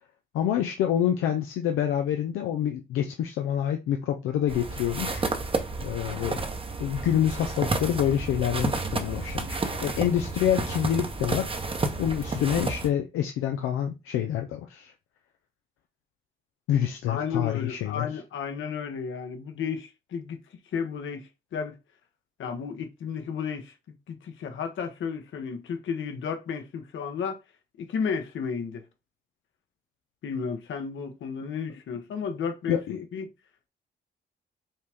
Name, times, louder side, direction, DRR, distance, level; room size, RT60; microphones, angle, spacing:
voice 1, 0.3-5.3 5.8-6.4 6.8-14.9 16.7-18.1 32.7-33.0, left 10 dB, 90° left, 0.5 m, -27 dB
sound 1, 4.5-12.9, right 3 dB, 25° right, 0.9 m, -31 dB
voice 2, 17.1-20.4 20.7-21.8 22.4-23.7 24.1-27.4 27.8-28.8 30.2-33.3, left 6 dB, 70° left, 1.1 m, -33 dB
5.4 x 2.3 x 3.5 m
cardioid pair, 75°, 20 cm